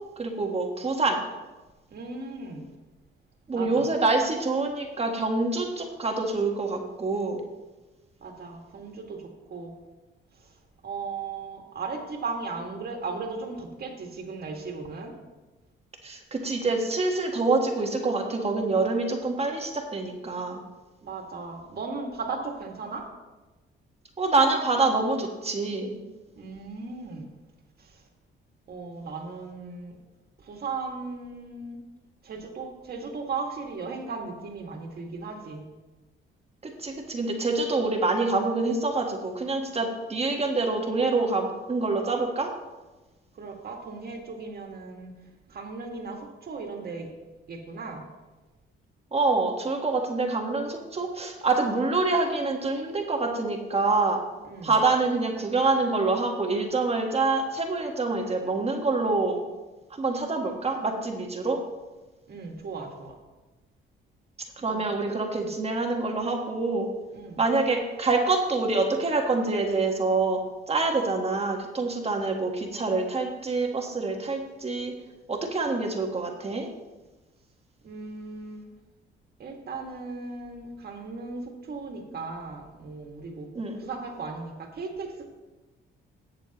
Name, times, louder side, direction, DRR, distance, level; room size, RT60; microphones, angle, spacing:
voice 1, 0.2-1.2 3.5-7.4 16.0-20.6 24.2-26.0 36.6-42.5 49.1-54.2 54.6-59.4 59.9-61.6 64.6-66.9 67.4-70.4 70.7-74.9 75.3-76.7 83.5-83.8, right 3 dB, 30° right, 2 dB, 1.5 m, -26 dB
voice 2, 1.9-2.6 3.5-3.8 8.2-9.7 10.4-10.5 10.8-15.1 21.0-23.1 26.4-27.3 27.8-28.0 28.7-30.0 30.4-31.8 32.2-35.6 43.3-45.1 45.5-47.1 47.5-48.1 54.5-54.7 62.3-63.2 64.7-64.9 65.3-65.5 67.1-67.4 77.8-78.7 79.4-83.5 83.8-85.3, right 4 dB, 50° right, 2 dB, 2.0 m, -37 dB
17.5 x 6.7 x 3.0 m, 1.2 s
cardioid pair, 90°, 20 cm